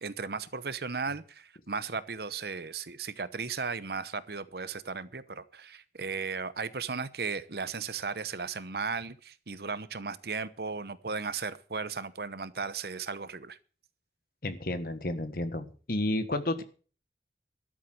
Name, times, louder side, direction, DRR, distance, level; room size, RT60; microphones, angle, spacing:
voice 1, 0.0-13.6, right 5 dB, 60° right, 15 dB, 0.8 m, -36 dB
voice 2, 14.4-16.6, left 1 dB, 55° left, 10 dB, 1.4 m, -31 dB
12.5 x 7.4 x 7.7 m, 0.40 s
head